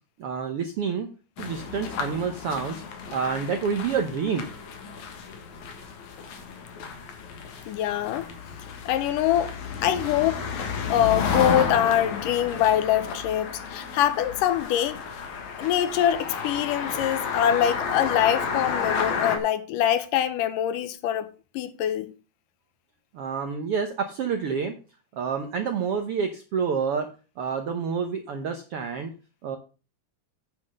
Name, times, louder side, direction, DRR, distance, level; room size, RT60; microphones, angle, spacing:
voice 1, 0.2-1.1 1.4-2.8 3.1-4.5 23.1-24.7 25.1-27.1 27.4-29.1 29.4-29.6, right 6 dB, 70° right, 1.3 m, -28 dB
sound 1, 1.4-19.4, left 6 dB, 65° left, 2.7 m, -32 dB
voice 2, 7.7-8.3 8.9-10.5 10.9-15.0 15.6-22.1, left 11 dB, 80° left, 2.4 m, -24 dB
9.7 x 5.8 x 6.4 m
omnidirectional pair, 3.9 m